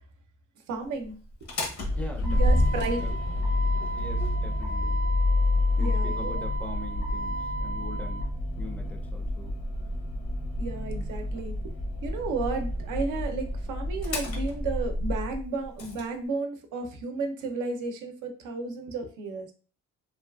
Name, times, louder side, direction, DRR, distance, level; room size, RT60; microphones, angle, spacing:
voice 1, 0.7-1.1 2.2-3.1 5.8-6.4 10.6-11.5 12.0-19.5, right 4 dB, 85° right, 5 dB, 0.6 m, -33 dB
Motor vehicle (road), 1.3-16.0, left 1 dB, 60° left, 0.8 m, -28 dB
voice 2, 2.0-2.7 3.0-3.1 3.9-5.0 5.8-8.3 8.6-9.5, left 2 dB, 5° left, 1 dB, 0.4 m, -42 dB
2.7 x 2.3 x 2.2 m, 0.38 s
cardioid pair, 90°, 30 cm